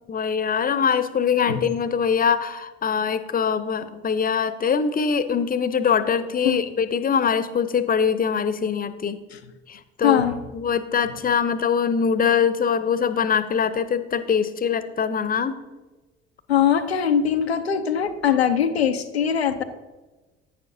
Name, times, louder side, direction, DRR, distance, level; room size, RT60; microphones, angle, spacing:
voice 1, 0.1-9.2 9.7-10.2 10.5-15.6, left 6 dB, 30° left, 13 dB, 0.7 m, -23 dB
voice 2, 10.0-10.4 16.5-19.6, left 8 dB, 90° left, 7 dB, 0.5 m, -21 dB
11.0 x 9.3 x 2.7 m, 1.2 s
figure-of-eight pair, 50°, 31 cm